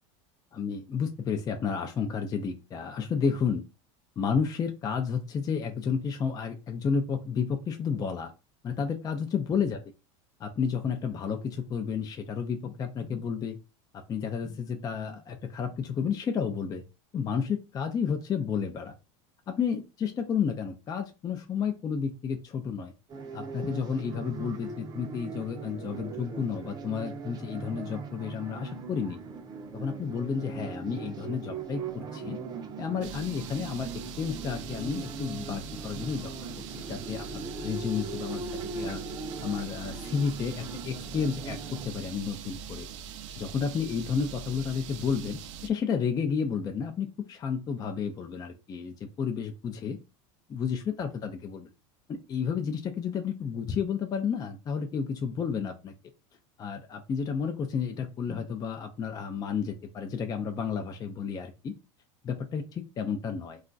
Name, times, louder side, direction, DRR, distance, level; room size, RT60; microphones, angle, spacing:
voice 1, 0.5-3.6 4.2-8.3 8.6-9.8 10.4-13.6 13.9-16.8 17.1-18.9 19.5-22.9 23.3-29.2 29.7-32.4 32.8-33.9 34.2-36.3 36.8-39.0 39.4-42.9 43.4-50.0 50.5-51.7 52.1-55.9 56.6-61.7 62.2-63.6, left 6 dB, 25° left, 5 dB, 0.4 m, -31 dB
sound 1, 23.1-41.9, right 4 dB, 25° right, 0.6 m, -40 dB
sound 2, 33.0-45.7, right 7 dB, 80° right, 0.5 m, -42 dB
2.4 x 2.2 x 3.8 m, 0.28 s
supercardioid pair, 130°, 16 cm